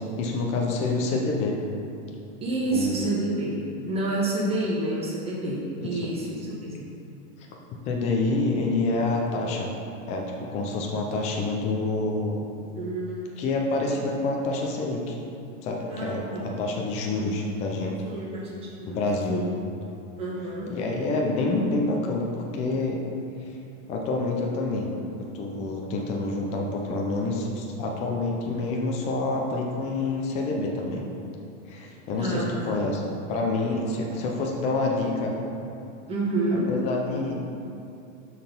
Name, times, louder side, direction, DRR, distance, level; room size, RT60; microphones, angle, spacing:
voice 1, 0.0-1.6 2.7-3.1 5.8-6.1 7.8-9.7 10.1-12.4 13.4-15.2 15.6-18.0 18.9-19.4 20.7-23.0 23.4-23.5 23.9-24.9 25.2-31.1 31.7-33.0 33.3-35.3 36.7-37.5, left 2 dB, 20° left, 0 dB, 0.5 m, -27 dB
voice 2, 2.4-3.6 3.9-6.9 12.7-13.3 15.9-16.5 17.1-17.2 18.0-19.0 19.3-19.5 20.2-20.7 32.2-32.8 36.1-36.7, right 2 dB, 15° right, -6 dB, 1.3 m, -29 dB
6.7 x 4.0 x 5.2 m, 2.6 s
supercardioid pair, 145°, 38 cm